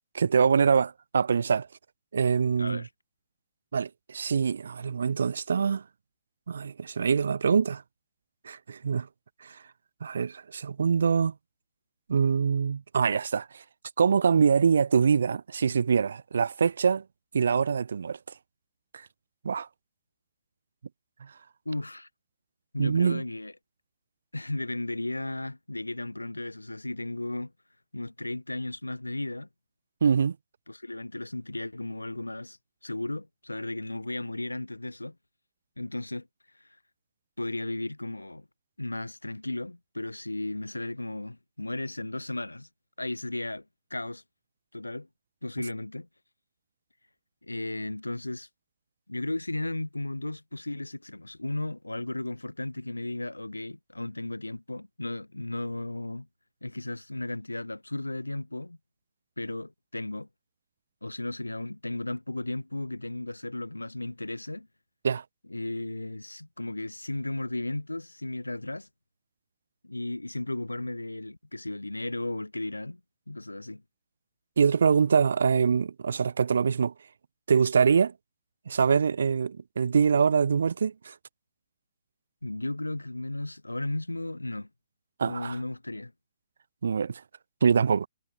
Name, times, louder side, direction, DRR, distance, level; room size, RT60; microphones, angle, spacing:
voice 1, 0.1-1.7 2.1-2.8 3.7-5.8 6.5-7.8 8.4-9.1 9.4-9.6 10.0-11.3 12.1-13.6 14.0-17.0 17.3-18.2 18.9-19.1 19.4-19.7 21.2-21.3 22.8-23.2 30.0-30.4 65.0-65.2 74.6-76.9 77.5-78.1 78.7-81.1 85.2-85.6 86.8-87.2 87.6-88.1, right 6 dB, 60° right, 0.4 m, -24 dB
voice 2, 2.6-2.9 21.6-22.1 22.7-23.5 24.3-27.5 27.9-29.5 30.7-32.6 32.8-35.2 35.8-36.3 36.6-36.7 37.4-38.5 38.8-42.7 43.0-43.6 43.9-44.2 44.7-45.1 45.4-46.1 47.4-48.5 49.1-56.3 56.6-58.8 59.4-60.3 61.0-64.7 65.5-68.9 69.8-73.0 73.3-73.8 82.4-84.7 85.2-86.1, left 2 dB, 85° left, 1.0 m, -35 dB
figure-of-eight pair, 125°, 0 cm